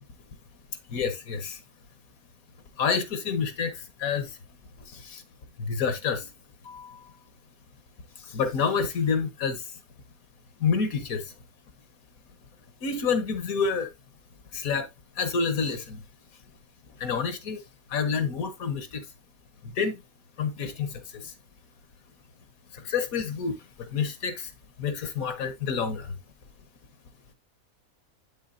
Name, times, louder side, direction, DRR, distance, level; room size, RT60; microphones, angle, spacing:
voice 1, 0.9-1.6 2.8-3.7 4.0-4.3 5.1-5.2 5.6-6.2 6.7-7.0 8.3-9.6 10.6-11.2 12.8-13.9 14.5-14.9 15.2-16.0 17.0-17.6 17.9-19.0 19.6-20.0 20.4-20.9 22.9-23.6 23.9-24.4 24.8-26.1, left 5 dB, 75° left, 1.5 m, -28 dB
8.2 x 6.2 x 2.5 m
omnidirectional pair, 1.5 m